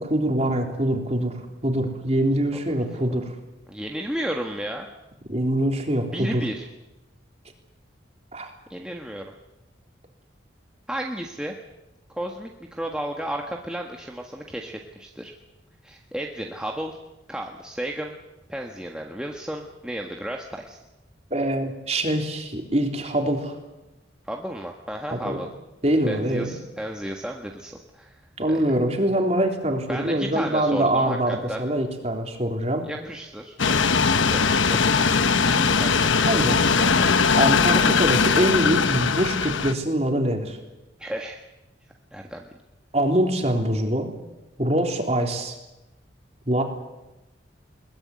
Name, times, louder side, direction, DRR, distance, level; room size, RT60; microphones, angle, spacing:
voice 1, 0.0-3.3 5.3-6.4 8.3-8.5 21.3-23.6 25.1-25.4 25.8-26.5 28.4-32.8 36.2-36.6 37.4-40.6 42.9-44.1 44.6-45.6 46.5-46.6, right 1 dB, 35° right, 3 dB, 3.5 m, -24 dB
voice 2, 3.7-4.9 6.1-6.7 8.7-9.3 10.9-11.5 12.1-15.3 15.8-17.0 17.3-18.2 18.5-20.8 24.2-25.5 26.1-28.8 29.9-31.6 32.8-34.9 35.5-36.9 38.8-39.0 41.0-41.4 42.1-42.4, right 1 dB, 5° right, 1 dB, 1.4 m, -33 dB
sound 1, 33.6-39.7, left 5 dB, 90° left, 1.2 m, -20 dB
21.5 x 20.5 x 9.6 m, 1.0 s
head